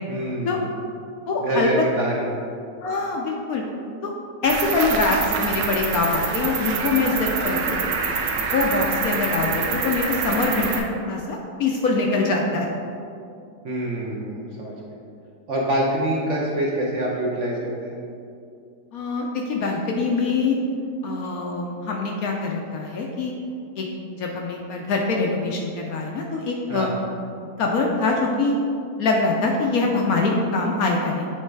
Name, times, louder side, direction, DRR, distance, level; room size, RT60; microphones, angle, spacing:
voice 1, 0.1-0.6 1.4-2.3 13.6-14.8 15.5-18.0 26.7-26.9, right 1 dB, 55° right, -4 dB, 0.9 m, -25 dB
voice 2, 1.3-1.7 2.8-3.6 4.0-4.1 4.4-7.8 8.5-12.7 18.9-20.6 21.0-23.3 23.8-23.9 24.2-26.9 27.6-28.6 29.0-31.3, left 3 dB, 70° left, 0 dB, 0.9 m, -24 dB
Cricket, 4.4-10.8, right 5 dB, 85° right, 1.4 m, -26 dB
7.7 x 3.2 x 4.5 m, 2.5 s
omnidirectional pair, 1.9 m